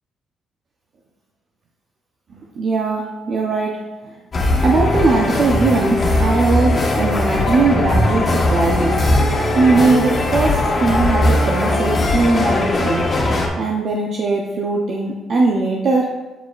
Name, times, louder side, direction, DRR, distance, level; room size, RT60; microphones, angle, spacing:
voice 1, 2.3-3.8 4.6-9.0 9.6-13.1 13.6-16.1, right 3 dB, 55° right, -2 dB, 0.7 m, -19 dB
sound 1, 4.3-13.5, left 1 dB, 40° left, 1.2 m, -18 dB
7.9 x 4.9 x 2.4 m, 1.1 s
cardioid pair, 90°, 0 cm